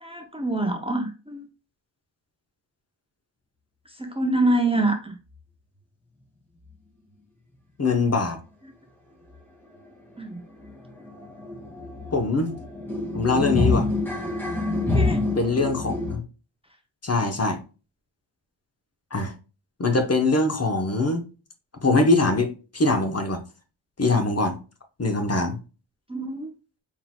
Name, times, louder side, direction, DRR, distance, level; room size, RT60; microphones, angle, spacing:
voice 1, 0.0-1.4 4.0-5.2 10.2-10.4 14.9-15.2 26.1-26.5, right 2 dB, 15° right, 3 dB, 0.7 m, -25 dB
voice 2, 7.8-8.4 12.1-12.5 13.1-13.9 15.4-16.2 17.0-17.6 19.1-19.3 19.8-21.2 21.8-23.4 24.0-24.6 25.0-25.6, left 3 dB, 35° left, 5 dB, 1.0 m, -22 dB
sound 1, 9.3-9.4 9.7-9.9 10.1-16.2, left 2 dB, 5° left, 1.8 m, -27 dB
4.6 x 3.8 x 2.3 m, 0.32 s
cardioid pair, 55°, 45 cm